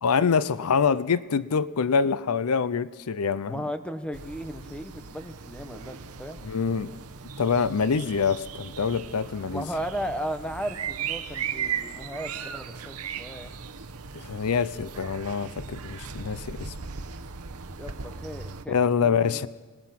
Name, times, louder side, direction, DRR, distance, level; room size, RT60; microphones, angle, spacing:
voice 1, 0.0-3.6 6.4-6.9 7.4-9.7 14.2-16.7 18.7-19.5, left 6 dB, 85° left, 16 dB, 0.6 m, -25 dB
voice 2, 3.5-6.4 9.4-13.5 17.8-19.5, equal, 5° left, 8 dB, 1.0 m, -36 dB
sound 1, 4.1-18.6, right 7 dB, 85° right, 1.0 m, -37 dB
26.0 x 19.5 x 5.9 m, 1.4 s
head